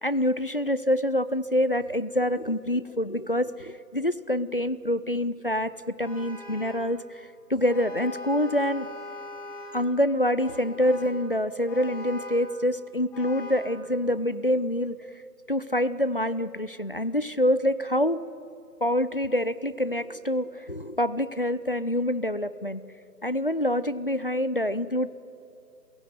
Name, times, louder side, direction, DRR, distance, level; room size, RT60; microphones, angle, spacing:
voice 1, 0.0-7.0 7.5-8.9 9.7-14.9 15.5-18.2 18.8-22.8 23.2-25.1, left 1 dB, 35° left, 16 dB, 0.5 m, -26 dB
Vehicle horn car horn honking, 6.0-6.9 7.7-9.9 10.4-11.2 11.7-12.5 13.1-13.7, left 2 dB, 5° left, 1.5 m, -40 dB
29.0 x 16.5 x 9.4 m, 2.6 s
figure-of-eight pair, 150°, 49 cm